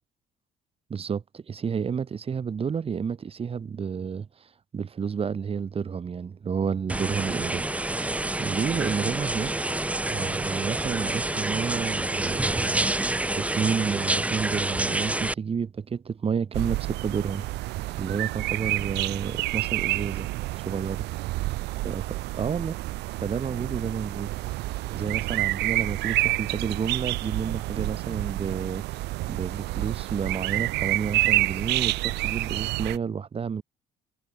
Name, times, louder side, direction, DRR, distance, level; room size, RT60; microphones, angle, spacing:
voice 1, 0.9-4.3 4.7-7.6 8.4-9.5 10.1-12.9 13.3-17.5 18.0-20.3 20.6-21.0 21.8-22.8 23.2-24.3 24.9-33.6, right 6 dB, 35° right, 2.2 m, -30 dB
sound 1, 6.9-15.3, right 2 dB, 10° right, 1.0 m, -28 dB
sound 2, 16.5-33.0, right 19 dB, 85° right, 1.2 m, -29 dB
cardioid pair, 110°, 17 cm